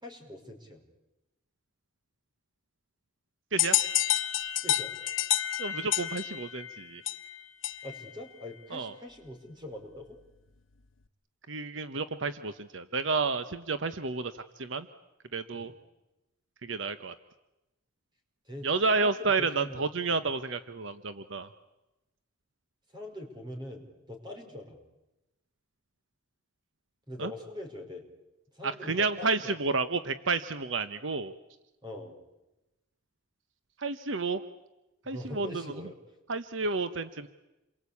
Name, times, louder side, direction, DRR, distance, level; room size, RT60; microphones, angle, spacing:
voice 1, 0.0-0.8 4.6-4.9 7.8-10.2 15.5-15.7 18.5-18.7 18.9-19.8 20.1-20.2 22.9-24.8 27.1-28.0 28.5-29.6 31.8-32.1 35.0-36.0, left 1 dB, 25° right, 4 dB, 5.3 m, -43 dB
sound 1, 3.6-8.1, left 12 dB, 75° left, 1.1 m, -29 dB
voice 2, 5.6-7.0 8.7-8.9 11.5-14.9 15.3-15.7 16.6-17.1 18.6-21.5 27.2-27.3 28.6-31.3 33.8-34.4 35.1-35.9 36.3-37.3, right 4 dB, 70° right, 11 dB, 1.0 m, -31 dB
28.5 x 23.0 x 8.5 m, 0.98 s
head